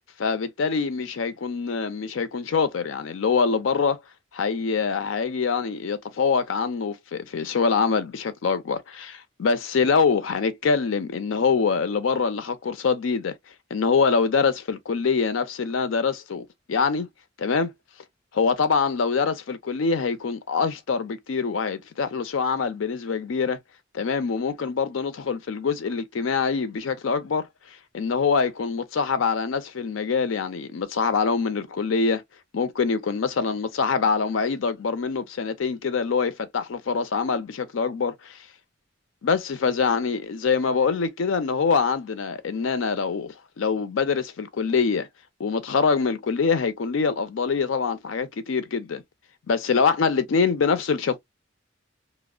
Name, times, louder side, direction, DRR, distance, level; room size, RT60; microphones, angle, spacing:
voice 1, 0.2-4.0 4.3-13.3 13.7-17.1 17.4-17.7 18.3-23.6 23.9-27.5 27.9-32.2 32.5-38.4 39.2-45.1 45.4-49.0 49.5-51.2, left 5 dB, 85° left, 0.5 m, -24 dB
2.7 x 2.0 x 2.3 m
head